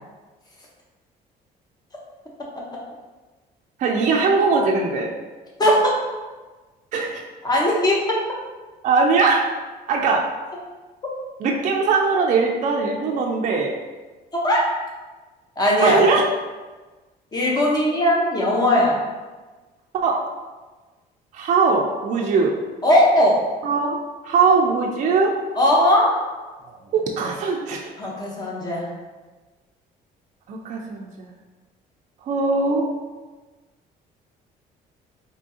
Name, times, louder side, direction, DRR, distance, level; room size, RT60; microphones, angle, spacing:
voice 1, 3.8-5.1 6.9-7.3 8.8-9.5 9.9-10.2 11.4-13.7 15.8-16.3 19.9-20.2 21.3-22.5 23.6-24.0 24.2-25.3 26.7-27.9 30.5-31.3 32.2-32.9, right 4 dB, 45° right, 0 dB, 0.4 m, -20 dB
voice 2, 7.4-8.0 14.4-14.6 15.6-16.0 17.3-18.9 22.8-23.4 25.6-26.1 28.0-28.9, left 1 dB, 25° left, -3 dB, 0.9 m, -18 dB
3.5 x 2.7 x 2.7 m, 1.3 s
cardioid pair, 110°, 17 cm